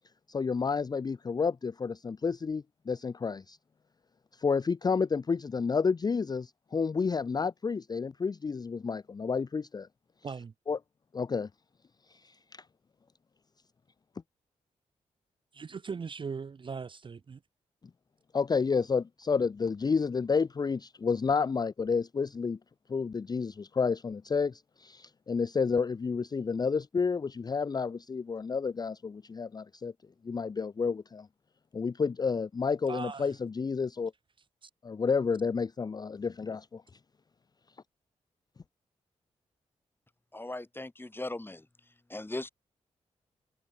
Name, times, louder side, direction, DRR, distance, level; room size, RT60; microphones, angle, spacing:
voice 1, 0.3-3.6 4.3-9.9 10.7-10.8 11.1-11.5 12.1-12.6 18.3-22.6 22.9-29.9 30.2-31.3 31.7-34.1 34.8-36.8, left 5 dB, 30° left, 0.5 m, -30 dB
voice 2, 15.5-17.4 32.9-33.3 34.6-34.7, right 5 dB, 40° right, 0.6 m, -39 dB
voice 3, 40.3-41.7 42.1-42.5, left 2 dB, 15° left, 1.9 m, -38 dB
supercardioid pair, 50°, 13 cm